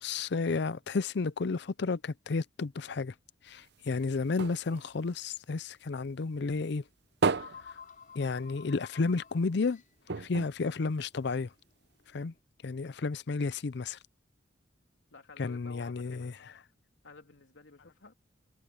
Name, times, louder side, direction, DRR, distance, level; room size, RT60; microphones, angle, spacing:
voice 1, 0.0-3.1 3.5-6.8 8.2-9.8 10.2-11.5 12.1-12.3 12.6-14.0 15.4-16.3, left 4 dB, 65° left, 0.5 m, -32 dB
sound 1, 3.5-6.1 6.5-8.7 9.1-9.2 9.5-9.6 10.1-11.6 12.2-12.3, right 4 dB, 65° right, 0.8 m, -35 dB
sound 2, 5.6-5.7 6.8-6.9 7.1-12.4, left 6 dB, 45° left, 7.1 m, -54 dB
voice 2, 15.1-16.3 17.0-18.1, left 3 dB, 85° left, 3.0 m, -52 dB
head